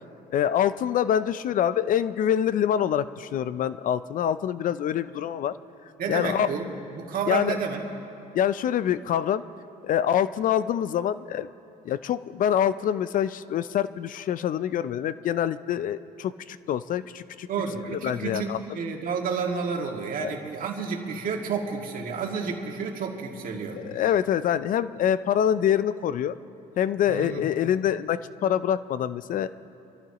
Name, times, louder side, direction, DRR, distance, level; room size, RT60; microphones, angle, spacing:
voice 1, 0.3-5.6 6.1-6.5 7.3-7.6 8.3-9.4 9.8-11.5 11.8-17.5 17.9-18.6 20.2-20.4 23.8-26.4 26.8-29.5, left 9 dB, 55° left, 15 dB, 0.4 m, -25 dB
voice 2, 6.0-7.8 17.5-23.8 27.1-27.4, right 5 dB, 55° right, 0 dB, 2.1 m, -30 dB
26.5 x 13.5 x 3.0 m, 2.7 s
cardioid pair, 110°, 17 cm